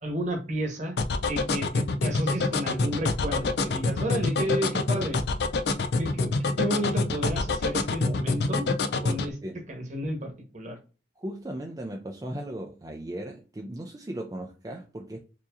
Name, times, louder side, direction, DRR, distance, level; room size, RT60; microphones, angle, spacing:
voice 1, 0.0-1.0 1.3-5.2 6.0-8.7 9.0-9.4 9.7-10.8, equal, 45° right, 1.1 m, -31 dB
sound 1, 1.0-9.3, left 3 dB, 65° left, 0.5 m, -26 dB
voice 2, 11.2-15.2, right 1 dB, 20° right, 0.4 m, -37 dB
4.8 x 2.9 x 2.5 m
head